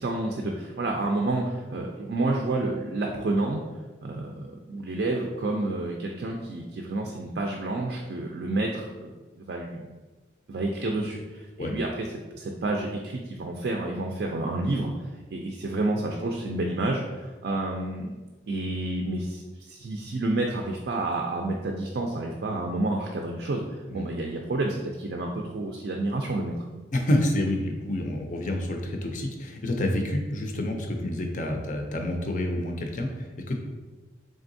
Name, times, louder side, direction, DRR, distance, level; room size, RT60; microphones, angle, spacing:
voice 1, 0.0-3.6 4.0-9.1 9.4-9.9 10.5-11.9 12.3-14.9 15.3-18.1 18.5-23.6 23.9-26.5, right 2 dB, 65° right, 1 dB, 0.4 m, -29 dB
voice 2, 26.9-33.6, left 1 dB, 45° left, 3 dB, 0.5 m, -28 dB
3.7 x 3.4 x 2.6 m, 1.2 s
head